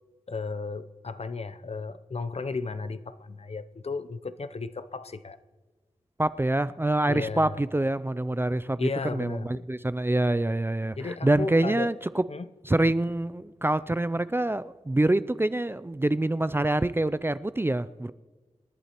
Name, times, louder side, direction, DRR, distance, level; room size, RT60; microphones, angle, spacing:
voice 1, 0.3-5.4 7.1-7.6 8.7-9.7 10.9-11.9 12.3-12.5, left 4 dB, 55° left, 0.6 m, -34 dB
voice 2, 6.2-11.0 11.2-12.2 12.7-18.1, right 1 dB, 20° right, 0.3 m, -26 dB
27.0 x 11.0 x 3.0 m
wide cardioid pair, 80°, 12 cm